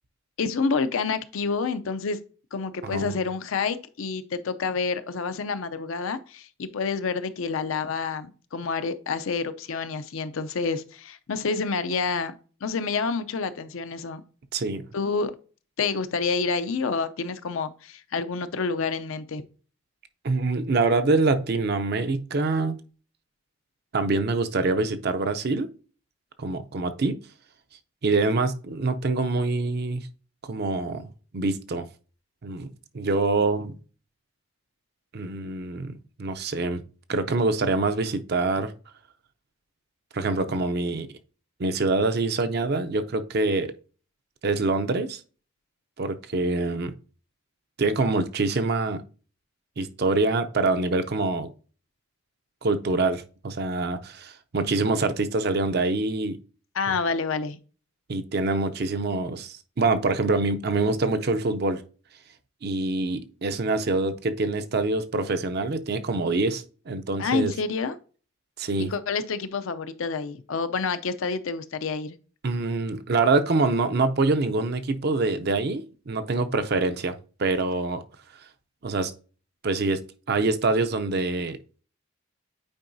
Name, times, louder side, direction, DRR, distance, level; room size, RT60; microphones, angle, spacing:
voice 1, 0.4-2.2 2.5-12.3 12.6-14.2 14.9-15.4 15.8-19.4 56.7-57.6 67.2-68.0 68.9-72.2, left 4 dB, 70° left, 0.5 m, -28 dB
voice 2, 2.8-3.2 14.5-14.8 20.2-22.7 23.9-25.7 26.4-27.2 28.0-30.1 30.4-31.1 31.3-31.9 32.4-32.7 32.9-33.7 35.1-35.9 36.2-36.8 37.1-38.7 40.1-41.1 41.6-43.7 44.4-45.2 46.0-46.9 47.8-49.0 49.8-51.5 52.6-56.4 56.9-57.0 58.1-61.8 62.6-67.5 68.6-68.9 72.4-78.0 78.8-79.1 79.6-80.0 80.3-81.6, right 3 dB, 50° right, 0.5 m, -25 dB
8.8 x 4.6 x 2.6 m
head